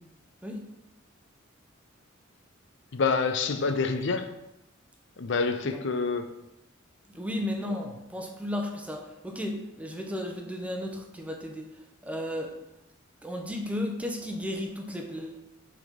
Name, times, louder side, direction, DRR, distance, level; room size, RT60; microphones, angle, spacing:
voice 1, 2.9-4.3 5.2-6.3, left 4 dB, 60° left, 0.5 m, -27 dB
voice 2, 7.1-11.7 12.0-12.6 13.2-15.4, left 1 dB, 5° right, 0.8 m, -34 dB
6.0 x 4.1 x 5.2 m
head